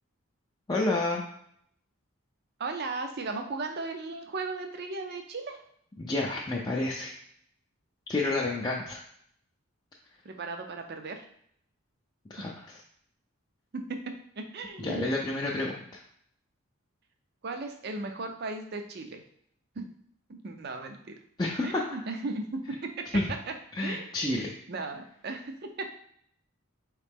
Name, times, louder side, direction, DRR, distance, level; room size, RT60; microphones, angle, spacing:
voice 1, 0.7-1.2 6.0-7.1 8.1-9.0 12.3-12.5 14.8-15.8 21.4-21.8 23.1-23.2 23.8-24.5, left 2 dB, 20° left, -3 dB, 0.4 m, -29 dB
voice 2, 2.6-5.6 10.2-11.2 13.7-15.1 15.5-15.7 17.4-19.2 19.8-19.9 20.3-21.1 21.6-23.0 23.5-23.6 23.8-24.4 24.7-25.9, right 3 dB, 50° right, 5 dB, 0.5 m, -36 dB
4.7 x 3.2 x 3.4 m, 0.67 s
head